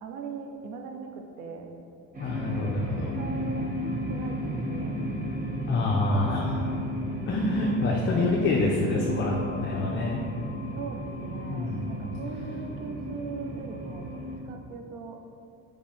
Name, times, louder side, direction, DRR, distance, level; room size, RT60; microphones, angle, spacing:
voice 1, 0.0-1.7 3.2-3.6 4.1-5.3 6.2-6.7 7.4-7.5 10.7-15.2, right 5 dB, 75° right, 3 dB, 0.6 m, -40 dB
sound 1, 2.1-14.4, equal, 25° right, 0.9 m, -33 dB
voice 2, 2.2-3.1 5.7-6.5 7.3-9.3 9.6-10.2 11.5-12.0, left 2 dB, 35° left, -2 dB, 0.5 m, -27 dB
3.5 x 3.1 x 4.2 m, 2.5 s
cardioid pair, 105°, 33 cm